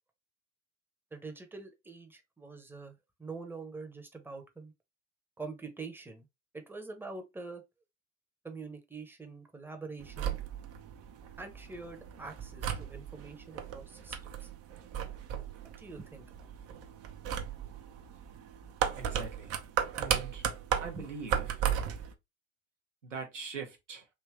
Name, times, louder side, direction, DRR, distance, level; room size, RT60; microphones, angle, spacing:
voice 1, 1.1-4.7 5.4-6.3 6.5-7.6 8.4-10.3 11.4-14.5 15.6-16.2 20.7-21.1, right 3 dB, 5° right, 0.9 m, -45 dB
sound 1, 10.0-22.1, right 9 dB, 40° right, 0.7 m, -36 dB
voice 2, 18.9-19.5 19.9-20.4 20.8-21.7 23.0-24.1, right 5 dB, 85° right, 1.0 m, -42 dB
3.5 x 2.9 x 3.2 m
figure-of-eight pair, 65°, 36 cm